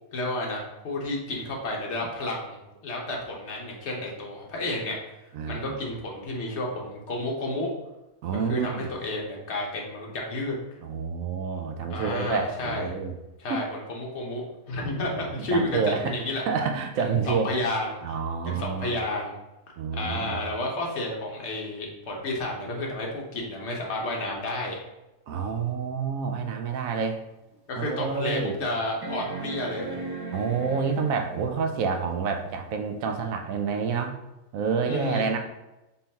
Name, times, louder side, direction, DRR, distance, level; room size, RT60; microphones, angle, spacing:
voice 1, 0.1-2.6 2.8-5.0 5.5-7.7 8.3-10.6 11.9-12.9 13.4-16.4 17.0-18.0 18.4-19.3 19.9-24.8 27.7-30.0 34.9-35.2, left 1 dB, 55° left, -1 dB, 1.2 m, -31 dB
voice 2, 5.3-5.8 8.2-8.9 10.8-13.1 13.5-13.6 14.9-15.0 15.4-17.5 18.0-19.0 19.8-20.4 25.3-27.2 27.8-28.6 30.3-34.2 34.5-35.4, right 5 dB, 75° right, 5 dB, 1.0 m, -28 dB
sound 1, 26.9-27.0 27.5-27.6 29.0-31.5 33.2-33.3, right 2 dB, 35° right, 0.4 m, -37 dB
4.0 x 3.8 x 2.8 m, 0.96 s
omnidirectional pair, 1.5 m